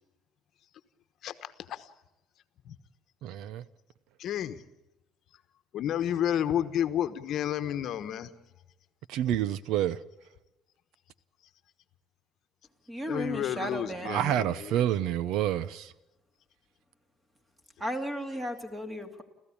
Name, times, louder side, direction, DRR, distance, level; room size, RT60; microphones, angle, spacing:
voice 1, 1.2-1.9 2.6-2.8 4.2-4.6 5.7-8.3 13.1-14.8, left 10 dB, 50° left, 1.2 m, -31 dB
voice 2, 3.2-3.6 9.1-10.0 14.1-15.9, right 11 dB, 70° right, 0.7 m, -28 dB
voice 3, 12.9-14.2 17.8-19.2, equal, 10° right, 2.5 m, -35 dB
30.0 x 14.5 x 8.6 m
cardioid pair, 155°, 0 cm